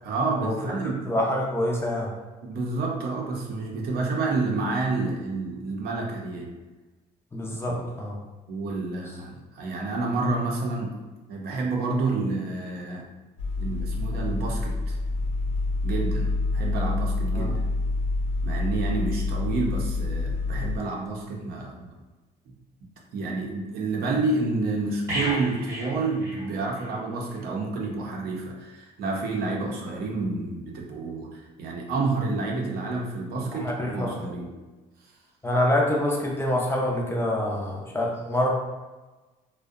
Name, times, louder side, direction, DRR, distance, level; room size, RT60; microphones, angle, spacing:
voice 1, 0.0-1.1 2.4-6.5 7.6-7.8 8.5-10.9 11.3-13.1 13.6-15.0 15.8-17.6 18.4-21.9 23.1-34.5 35.0-35.1, right 3 dB, 65° right, -1 dB, 0.6 m, -29 dB
voice 2, 1.0-2.1 7.3-8.2 17.3-17.6 33.4-34.2 35.4-38.5, left 1 dB, 15° left, -2 dB, 0.4 m, -26 dB
sound 1, 13.4-20.8, left 3 dB, 85° left, 0.6 m, -27 dB
sound 2, 25.1-27.0 27.3-27.5, equal, 20° right, 0.9 m, -33 dB
2.6 x 2.1 x 2.4 m, 1.2 s
cardioid pair, 110°, 17 cm